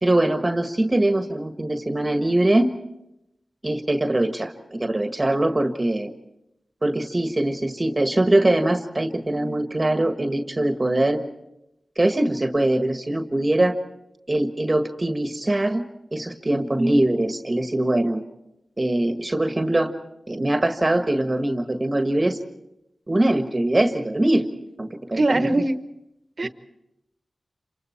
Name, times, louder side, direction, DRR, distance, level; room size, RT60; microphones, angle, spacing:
voice 1, 0.0-2.7 3.6-6.1 6.8-11.2 12.0-13.8 14.3-15.8 16.1-18.2 18.8-19.9 20.3-22.4 23.1-24.5 24.8-25.6, right 1 dB, 30° right, 7 dB, 1.6 m, -22 dB
voice 2, 16.5-16.8 25.1-25.8 26.4-26.5, right 2 dB, 55° right, 10 dB, 1.2 m, -23 dB
27.5 x 24.5 x 4.5 m, 0.90 s
cardioid pair, 45°, 0 cm